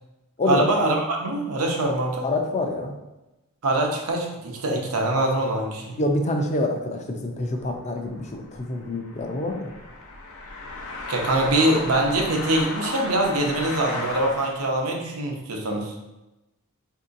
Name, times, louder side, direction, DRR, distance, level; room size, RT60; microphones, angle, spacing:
voice 1, 0.5-2.3 3.6-6.0 11.1-15.9, right 1 dB, 90° right, 1 dB, 0.7 m, -23 dB
voice 2, 2.2-2.9 6.0-9.7, left 1 dB, 30° left, 3 dB, 0.5 m, -26 dB
sound 1, 7.6-14.8, left 2 dB, 75° left, 0.6 m, -35 dB
4.5 x 2.8 x 2.5 m, 0.98 s
head